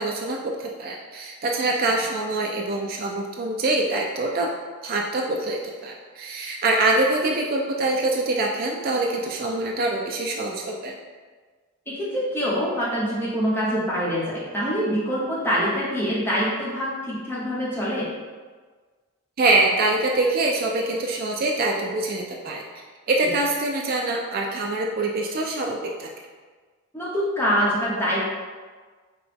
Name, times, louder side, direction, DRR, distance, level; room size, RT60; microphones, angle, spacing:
voice 1, 0.0-4.5 4.8-11.0 19.4-22.6 23.1-26.1, right 2 dB, 45° right, 0 dB, 0.3 m, -24 dB
voice 2, 11.9-18.1 23.2-23.3 26.9-28.2, equal, 10° left, -7 dB, 0.9 m, -25 dB
5.9 x 2.3 x 3.3 m, 1.5 s
head